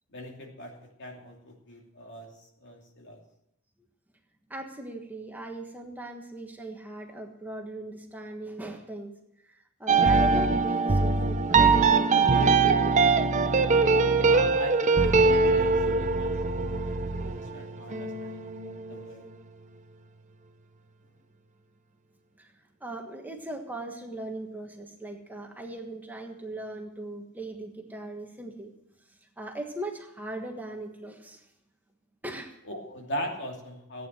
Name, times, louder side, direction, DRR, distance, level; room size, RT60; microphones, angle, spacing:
voice 1, 0.1-3.2 14.2-19.3 32.6-34.1, equal, 60° left, 1 dB, 2.8 m, -40 dB
voice 2, 4.5-9.1 9.4-13.1 22.4-28.7 29.1-31.5 32.2-32.5, right 2 dB, 10° right, 2 dB, 1.4 m, -39 dB
sound 1, 9.9-19.0, right 4 dB, 35° right, 0.7 m, -22 dB
14.5 x 9.2 x 7.6 m, 0.80 s
head